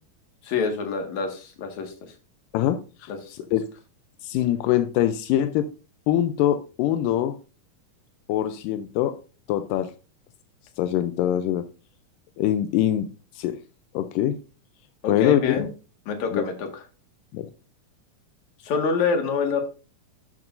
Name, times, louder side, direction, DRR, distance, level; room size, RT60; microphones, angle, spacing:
voice 1, 0.4-1.9 3.1-3.3 15.0-15.6 16.1-16.8 18.6-19.6, left 5 dB, 60° left, 4 dB, 3.0 m, -26 dB
voice 2, 2.5-3.1 3.5-3.6 4.2-5.7 6.1-7.4 8.3-9.2 9.5-9.9 10.8-11.7 12.4-13.1 13.4-13.6 13.9-14.4 15.1-15.7 16.3-16.4 17.3-17.5, left 12 dB, 85° left, 10 dB, 2.3 m, -23 dB
12.0 x 9.1 x 2.6 m, 0.33 s
omnidirectional pair, 3.8 m